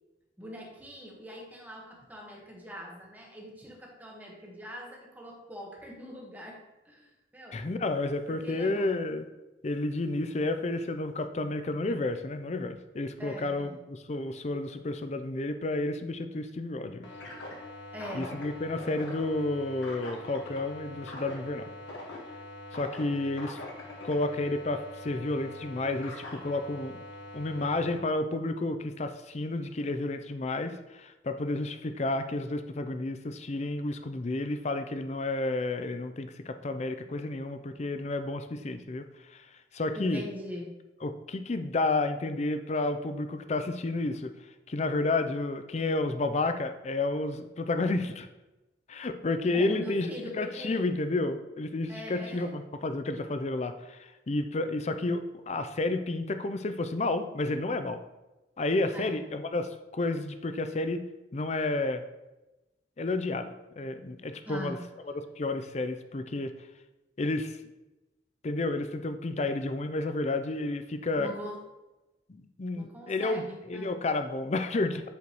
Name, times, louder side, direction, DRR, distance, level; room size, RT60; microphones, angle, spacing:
voice 1, 0.4-6.6 6.8-7.6 8.3-9.0 13.2-13.8 17.9-18.3 39.9-40.7 49.5-50.8 51.9-52.6 58.9-59.1 64.4-64.8 71.2-71.6 72.7-73.9, equal, 10° right, -2 dB, 1.3 m, -42 dB
voice 2, 7.5-9.2 9.6-17.1 18.1-21.7 22.7-23.6 24.0-27.0 27.3-39.5 39.7-40.2 41.0-44.3 44.7-48.3 48.9-50.1 50.4-58.0 58.6-61.0 61.3-62.0 63.0-64.8 65.4-66.5 67.2-67.6 68.4-71.3 72.3-75.0, left 2 dB, 35° left, 9 dB, 0.5 m, -31 dB
sound 1, 17.0-28.0, left 1 dB, 80° left, 1.4 m, -43 dB
8.2 x 5.0 x 3.0 m, 1.0 s
head